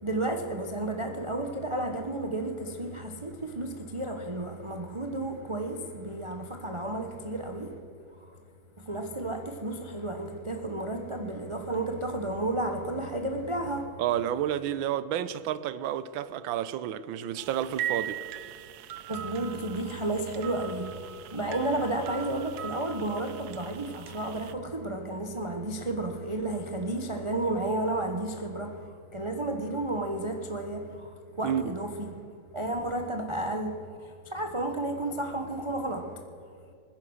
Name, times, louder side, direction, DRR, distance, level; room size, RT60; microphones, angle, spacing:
voice 1, 0.0-7.8 8.1-8.4 8.8-13.9 19.1-32.3 32.5-36.2, right 2 dB, 25° right, 0.7 m, -32 dB
voice 2, 14.0-18.2 31.4-31.7, right 10 dB, 85° right, 1.4 m, -30 dB
sound 1, 17.4-24.5, right 11 dB, 65° right, 1.1 m, -40 dB
20.5 x 10.5 x 6.4 m
omnidirectional pair, 2.1 m